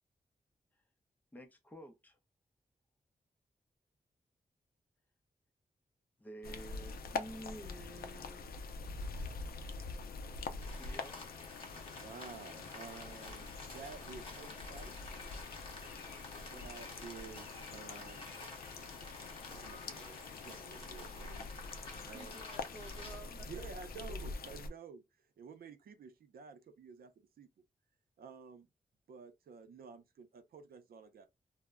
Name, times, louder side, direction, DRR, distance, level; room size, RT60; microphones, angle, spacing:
voice 1, 1.3-2.2 6.2-8.5 10.8-11.2, equal, 10° left, 0.5 m, -50 dB
sound 1, 6.4-24.7, left 4 dB, 90° left, 0.4 m, -45 dB
Rain, 10.6-23.2, left 2 dB, 35° left, 1.0 m, -51 dB
voice 2, 11.7-14.9 16.4-18.4 19.5-20.2 20.4-21.5 22.0-22.3 23.4-25.0 25.4-27.5 28.2-28.7 29.1-31.3, right 5 dB, 85° right, 0.5 m, -52 dB
voice 3, 22.0-24.2, right 2 dB, 35° right, 0.8 m, -53 dB
2.1 x 2.0 x 3.4 m
wide cardioid pair, 135°, 15 cm